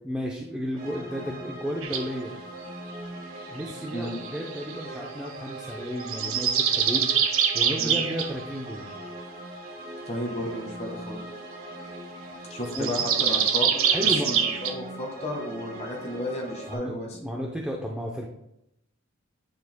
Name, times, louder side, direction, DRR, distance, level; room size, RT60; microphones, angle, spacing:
voice 1, 0.0-2.3 3.5-7.1 7.5-8.9 12.7-13.3 13.8-14.3 16.7-18.3, equal, 5° right, -2 dB, 0.6 m, -33 dB
sound 1, 0.8-16.7, right 1 dB, 45° right, 1.6 m, -41 dB
sound 2, 1.8-2.1 3.6-4.8 6.0-8.3 12.7-14.7, right 7 dB, 85° right, 0.7 m, -24 dB
voice 2, 10.0-11.2 12.5-13.7 14.0-17.2, left 1 dB, 30° left, 0 dB, 1.6 m, -33 dB
9.7 x 6.4 x 2.2 m, 0.82 s
head